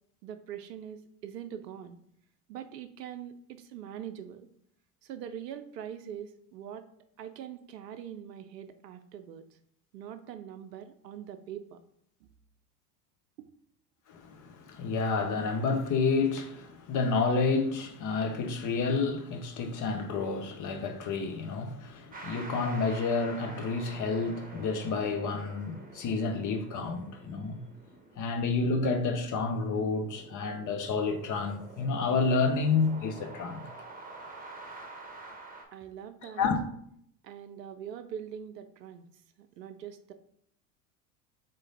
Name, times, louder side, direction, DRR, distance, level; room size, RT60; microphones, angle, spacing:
voice 1, 0.2-2.0 2.5-4.5 5.0-6.9 7.2-9.4 9.9-11.8 12.2-12.3 13.4-13.5 35.7-36.5 37.2-39.1 39.4-40.1, right 9 dB, 90° right, 0.6 m, -43 dB
voice 2, 14.1-27.6 28.2-33.7 36.4-36.6, left 4 dB, 40° left, 0.9 m, -29 dB
sound 1, 22.1-35.6, right 3 dB, 20° right, 0.9 m, -48 dB
3.8 x 3.2 x 3.9 m
hypercardioid pair, 80°, 48 cm